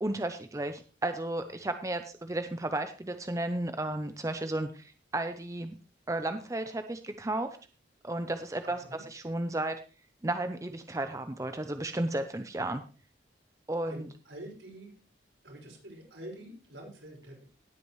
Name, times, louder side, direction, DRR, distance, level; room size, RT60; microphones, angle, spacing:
voice 1, 0.0-5.7 6.1-7.6 8.0-9.8 10.2-12.8 13.7-14.1, right 1 dB, 15° right, 8 dB, 0.5 m, -33 dB
voice 2, 8.6-9.0 13.9-14.9 15.4-17.4, right 1 dB, 75° right, -2 dB, 5.7 m, -46 dB
17.5 x 8.5 x 3.1 m, 0.36 s
head